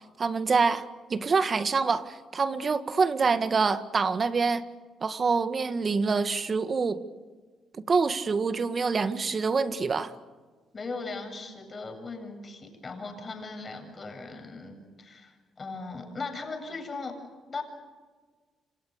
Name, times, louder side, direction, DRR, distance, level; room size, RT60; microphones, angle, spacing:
voice 1, 0.0-4.6 5.0-7.0 7.8-10.1, right 4 dB, 40° right, 10 dB, 1.8 m, -26 dB
voice 2, 10.7-17.2 17.5-17.6, left 3 dB, 35° left, 5 dB, 7.7 m, -38 dB
28.5 x 27.0 x 6.8 m, 1.4 s
cardioid pair, 90°, 0 cm